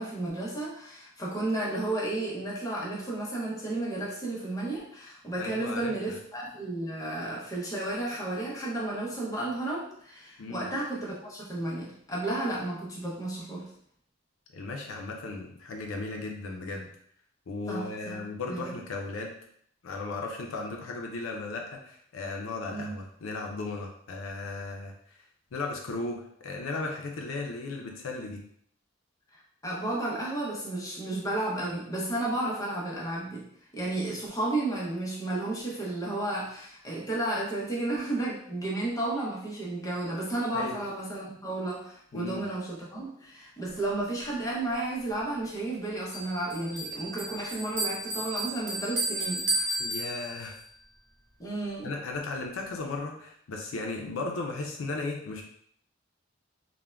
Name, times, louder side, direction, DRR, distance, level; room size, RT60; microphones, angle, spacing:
voice 1, 0.0-13.7 17.7-18.8 22.7-23.0 29.6-33.5 33.7-49.8 51.4-51.9, right 2 dB, 15° left, -5 dB, 0.6 m, -32 dB
voice 2, 5.4-6.2 10.4-10.7 14.5-16.9 17.5-19.4 19.8-25.2 25.5-28.4 40.5-40.8 42.1-42.4 49.8-50.6 51.8-55.4, left 3 dB, 85° left, 1 dB, 0.4 m, -36 dB
Bell, 46.1-50.6, right 1 dB, 65° right, 0.8 m, -33 dB
3.4 x 2.1 x 2.2 m, 0.65 s
head